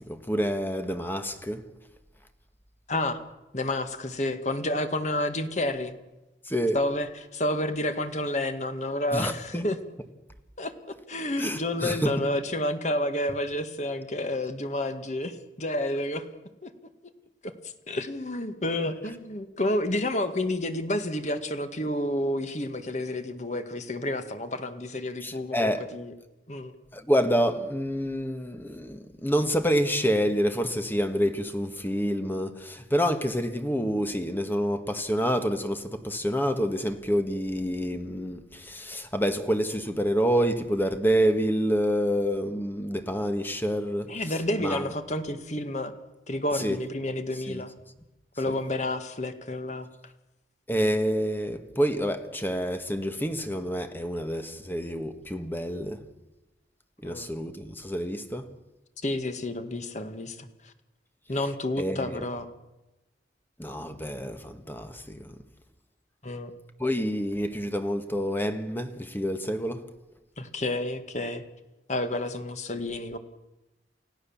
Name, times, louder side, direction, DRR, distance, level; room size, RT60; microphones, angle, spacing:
voice 1, 0.1-1.6 6.4-6.8 9.1-9.7 11.4-12.1 25.2-25.8 26.9-44.1 44.6-44.8 46.5-46.8 47.5-47.7 50.7-56.0 57.0-58.5 61.8-62.2 63.6-65.4 66.8-69.8, equal, 10° left, 1.6 m, -28 dB
voice 2, 2.9-3.2 3.5-6.0 6.7-9.8 10.6-10.7 11.1-16.3 16.6-16.7 17.4-26.1 26.5-26.7 44.1-45.9 46.3-47.7 48.4-50.1 57.0-57.3 59.0-60.7 61.3-62.5 66.2-66.5 70.4-71.4 71.9-73.2, left 1 dB, 40° left, 1.8 m, -30 dB
29.5 x 16.0 x 7.2 m
head